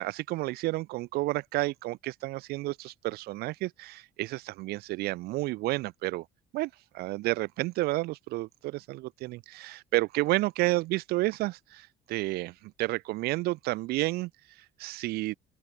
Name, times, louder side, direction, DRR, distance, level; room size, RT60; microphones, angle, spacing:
voice 1, 0.0-6.3 6.5-15.4, right 19 dB, 70° right, 0.5 m, -31 dB
open air
cardioid pair, 120°, 17 cm